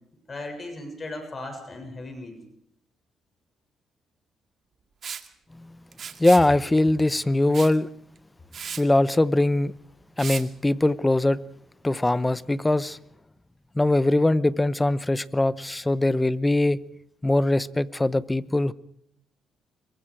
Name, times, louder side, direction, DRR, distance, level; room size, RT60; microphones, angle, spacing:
voice 1, 0.3-2.4, left 2 dB, 30° left, 6.9 m, -37 dB
Liquid, 5.0-5.3 5.9-6.5 7.5-7.8 8.2-8.3 8.5-8.8 10.2-10.4, right 7 dB, 55° right, 2.1 m, -35 dB
voice 2, 6.2-7.9 8.8-9.7 10.2-11.4 11.8-13.0 13.7-16.8 17.2-18.7, left 2 dB, 15° left, 0.9 m, -21 dB
26.0 x 23.0 x 4.9 m
cardioid pair, 90°, 0 cm